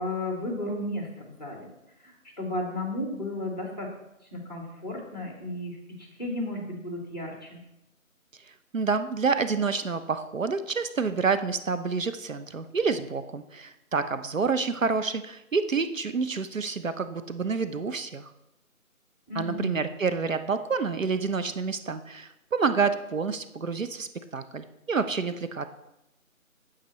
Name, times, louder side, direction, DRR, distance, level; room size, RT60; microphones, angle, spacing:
voice 1, 0.0-1.7 2.0-3.9 4.3-7.6 19.3-19.8, left 1 dB, 30° left, 1 dB, 1.6 m, -34 dB
voice 2, 8.7-18.3 19.3-25.7, right 5 dB, 65° right, 10 dB, 0.6 m, -28 dB
8.5 x 8.1 x 3.0 m, 0.90 s
figure-of-eight pair, 180°, 42 cm